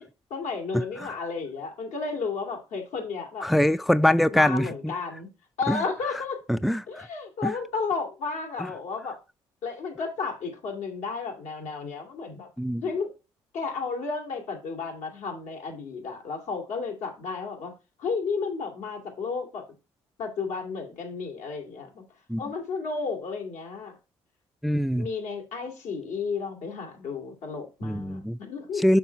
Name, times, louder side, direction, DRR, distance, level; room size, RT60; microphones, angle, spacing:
voice 1, 0.0-3.5 4.3-5.3 5.6-6.4 6.9-9.2 9.6-12.5 12.8-13.1 13.5-17.7 18.0-19.6 20.2-22.0 22.4-24.0 25.0-29.0, left 4 dB, 75° left, 2.4 m, -33 dB
voice 2, 3.4-4.7 5.7-5.8 6.5-6.8 7.4-7.5 12.6-12.8 22.3-22.4 24.6-25.1 27.8-28.4 28.8-29.0, left 1 dB, ahead, 0.3 m, -22 dB
6.0 x 5.4 x 4.5 m
supercardioid pair, 60°, 12 cm